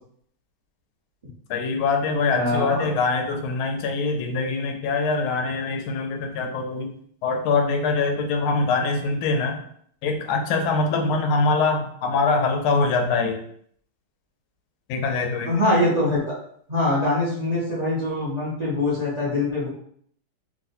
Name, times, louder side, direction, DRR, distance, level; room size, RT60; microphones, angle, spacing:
voice 1, 1.5-6.9 7.2-9.6 10.0-13.4 14.9-15.5, left 4 dB, 85° left, 4 dB, 1.4 m, -23 dB
voice 2, 2.3-2.9 15.4-16.3 16.7-19.7, left 1 dB, 45° right, -9 dB, 0.5 m, -23 dB
3.2 x 2.7 x 2.7 m, 0.64 s
omnidirectional pair, 2.2 m